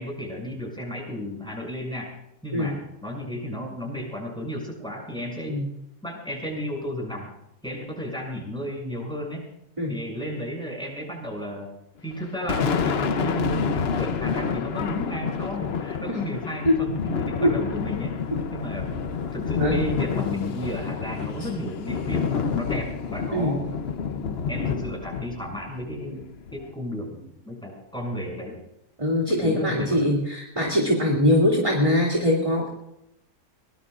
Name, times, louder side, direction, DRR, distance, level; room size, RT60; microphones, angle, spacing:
voice 1, 0.0-2.1 2.4-5.6 6.0-7.3 7.6-9.4 9.9-11.7 12.0-18.1 18.5-18.9 19.3-23.6 24.2-28.6 29.3-30.0, equal, 5° left, -2 dB, 6.9 m, -33 dB
Thunder, 12.1-26.7, left 6 dB, 50° left, 0.9 m, -29 dB
voice 2, 29.0-32.7, left 1 dB, 20° right, -2 dB, 2.6 m, -22 dB
23.0 x 20.0 x 2.5 m, 0.81 s
omnidirectional pair, 1.5 m